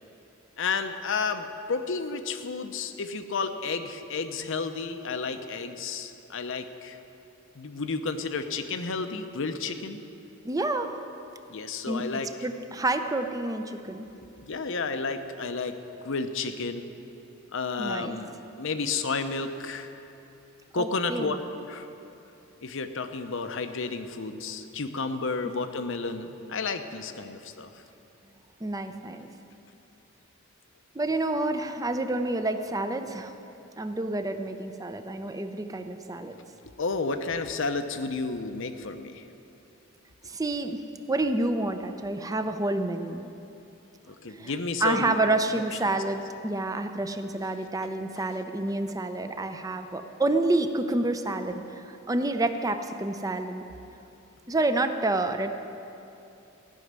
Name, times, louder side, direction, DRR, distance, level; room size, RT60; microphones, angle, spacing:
voice 1, 0.6-7.0 7.6-10.0 11.5-12.3 14.2-16.9 17.5-19.9 20.7-21.4 21.7-21.9 22.6-27.7 36.8-39.2 44.1-45.2 45.8-45.9 48.2-48.3, left 4 dB, 65° left, 8 dB, 0.8 m, -31 dB
voice 2, 10.4-10.9 11.9-12.0 12.4-14.1 17.8-18.2 20.8-21.4 28.6-29.3 30.9-33.3 33.8-36.3 40.2-40.8 41.1-43.3 44.3-44.5 44.8-53.6 54.5-55.6, right 2 dB, 15° right, 8 dB, 0.6 m, -28 dB
16.0 x 6.4 x 9.5 m, 2.8 s
head